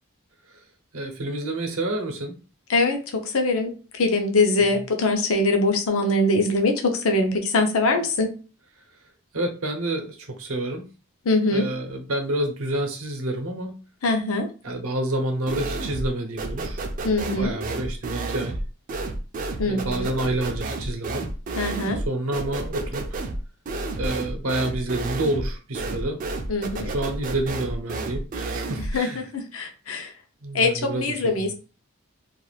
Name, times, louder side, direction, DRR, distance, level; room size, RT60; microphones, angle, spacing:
voice 1, 0.9-2.4 4.7-4.8 9.3-10.9 11.5-13.7 14.6-16.8 17.4-18.5 19.6-21.3 21.9-23.2 24.0-26.2 26.8-29.3 30.4-31.3, right 1 dB, 80° right, 4 dB, 0.7 m, -28 dB
voice 2, 3.3-3.7 4.0-8.3 11.3-11.7 14.0-14.5 17.0-17.6 19.6-20.1 21.6-22.0 26.5-26.9 28.9-30.1 30.5-31.5, left 2 dB, 80° left, 4 dB, 0.7 m, -22 dB
sound 1, 15.5-16.1 16.4-29.0, right 2 dB, 40° right, 0.4 m, -31 dB
2.4 x 2.3 x 3.2 m, 0.34 s
head